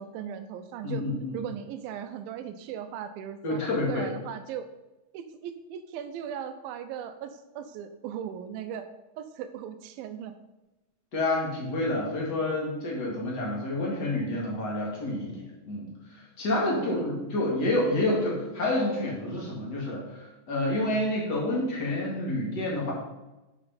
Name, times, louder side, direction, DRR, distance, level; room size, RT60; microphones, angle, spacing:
voice 1, 0.0-1.0 1.3-4.7 5.1-8.9 9.2-10.4 12.2-12.3 16.7-17.3, right 9 dB, 85° right, 9 dB, 2.5 m, -38 dB
voice 2, 0.8-1.4 3.4-4.1 11.1-15.9 16.4-22.9, left 1 dB, 35° left, -4 dB, 2.2 m, -28 dB
8.0 x 6.4 x 4.2 m, 1.0 s
omnidirectional pair, 4.1 m